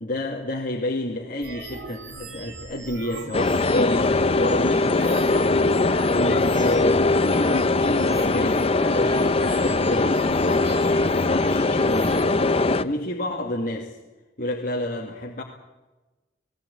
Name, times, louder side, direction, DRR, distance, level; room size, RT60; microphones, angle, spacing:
voice 1, 0.0-5.6 6.1-13.9 14.4-15.4, left 1 dB, 50° left, -1 dB, 2.3 m, -30 dB
sound 1, 1.4-12.2, right 3 dB, 65° right, 3.3 m, -40 dB
sound 2, 3.3-12.8, left 3 dB, 30° left, 0.8 m, -21 dB
19.0 x 18.5 x 8.7 m, 1.1 s
head